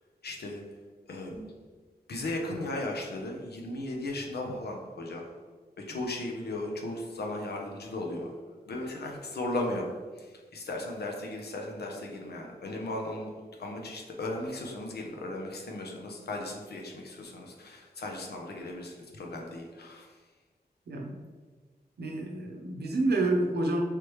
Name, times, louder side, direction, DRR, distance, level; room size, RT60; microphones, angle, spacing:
voice 1, 0.2-0.6 1.1-1.3 2.1-5.2 5.9-8.3 8.7-9.9 10.2-13.3 13.6-20.1, left 2 dB, 85° left, 1 dB, 0.6 m, -36 dB
sound 1, 1.2-1.7, right 3 dB, 25° right, 0.9 m, -49 dB
voice 2, 20.9-21.2 22.0-23.8, right 2 dB, 90° right, 0 dB, 0.6 m, -28 dB
3.3 x 3.1 x 3.0 m, 1.4 s
wide cardioid pair, 130°, 16 cm